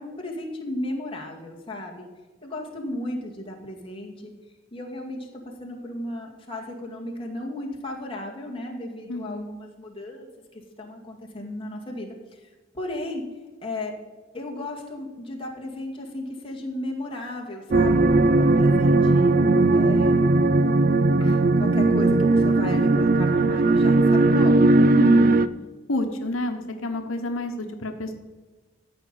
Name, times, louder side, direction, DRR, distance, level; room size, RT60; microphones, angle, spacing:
voice 1, 0.0-2.1 2.4-4.3 4.7-10.3 10.8-13.3 13.6-14.0 14.3-19.3 19.7-20.2 21.2-24.7, left 1 dB, 25° left, -1 dB, 2.1 m, -35 dB
voice 2, 9.1-9.5 25.0-25.4 25.9-28.1, left 1 dB, 85° left, 5 dB, 1.1 m, -29 dB
sound 1, 17.7-25.5, right 2 dB, 45° right, 0.4 m, -18 dB
14.0 x 5.3 x 8.4 m, 1.2 s
head